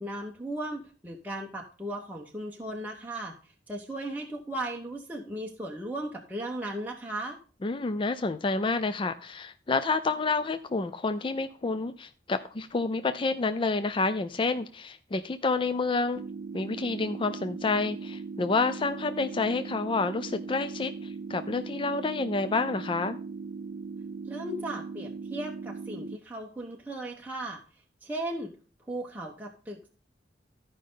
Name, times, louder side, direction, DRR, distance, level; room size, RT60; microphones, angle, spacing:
voice 1, 0.0-3.3 3.7-7.4 24.2-27.6 28.0-28.5 28.9-29.9, right 1 dB, 10° right, -1 dB, 1.0 m, -36 dB
voice 2, 7.6-16.2 16.5-23.2, left 3 dB, 30° left, 10 dB, 0.4 m, -29 dB
sound 1, 16.2-26.2, right 4 dB, 85° right, 0.4 m, -39 dB
13.5 x 5.2 x 3.8 m, 0.38 s
head